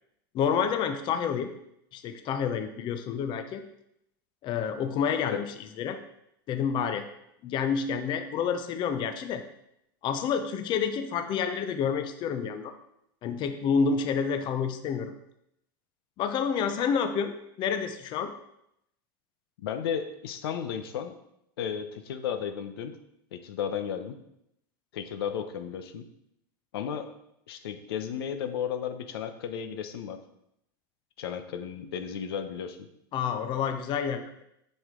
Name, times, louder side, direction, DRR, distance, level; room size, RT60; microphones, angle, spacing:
voice 1, 0.3-1.5 1.9-3.6 4.4-6.0 6.5-7.0 7.4-9.4 10.0-12.7 13.2-15.1 16.2-18.3 33.1-34.4, left 6 dB, 40° left, 8 dB, 0.7 m, -29 dB
voice 2, 19.6-21.2 21.6-23.0 23.3-24.2 24.9-26.1 26.7-27.1 27.5-30.2 31.2-32.9, left 8 dB, 85° left, 8 dB, 0.9 m, -34 dB
7.8 x 6.5 x 3.8 m, 0.79 s
supercardioid pair, 130°, 12 cm